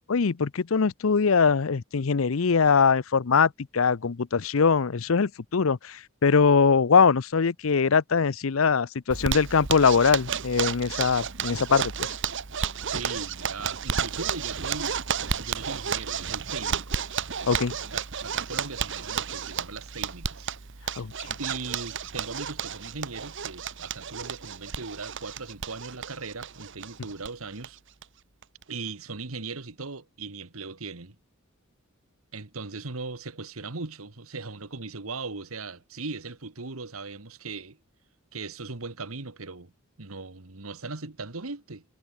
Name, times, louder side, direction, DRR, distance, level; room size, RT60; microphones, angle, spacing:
voice 1, 0.1-11.9 17.5-17.8 21.0-21.1, left 5 dB, 70° left, 0.6 m, -22 dB
Zipper (clothing), 9.1-27.3 27.6-27.7 28.0-28.1 28.4-28.9, right 7 dB, 60° right, 1.3 m, -32 dB
voice 2, 12.9-15.0 15.4-16.8 17.8-20.5 20.8-21.0 21.4-27.8 28.7-31.2 32.3-37.8 38.3-39.7 40.0-41.8, right 4 dB, 90° right, 1.7 m, -38 dB
head